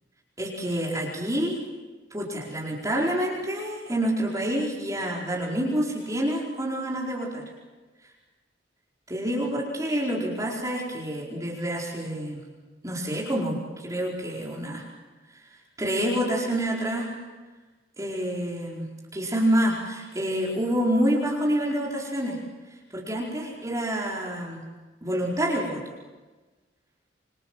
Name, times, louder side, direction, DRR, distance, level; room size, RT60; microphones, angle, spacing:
voice 1, 0.4-1.6 2.1-7.4 9.1-12.4 12.8-14.8 15.8-17.1 18.0-22.4 22.9-24.6 25.0-25.8, equal, 20° right, -3 dB, 4.7 m, -27 dB
27.0 x 25.0 x 7.7 m, 1.3 s
head